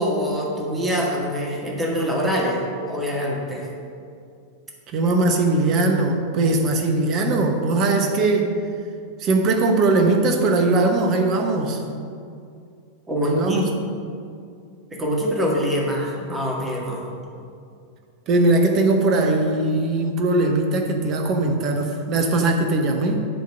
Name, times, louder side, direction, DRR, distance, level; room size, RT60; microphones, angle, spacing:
voice 1, 0.0-3.7 13.1-13.7 14.9-17.1, equal, 15° right, -2 dB, 1.9 m, -24 dB
voice 2, 4.9-8.5 9.2-11.8 13.2-13.7 18.3-23.3, right 2 dB, 35° right, 4 dB, 1.1 m, -20 dB
10.5 x 3.9 x 6.4 m, 2.4 s
figure-of-eight pair, 90°, 0 cm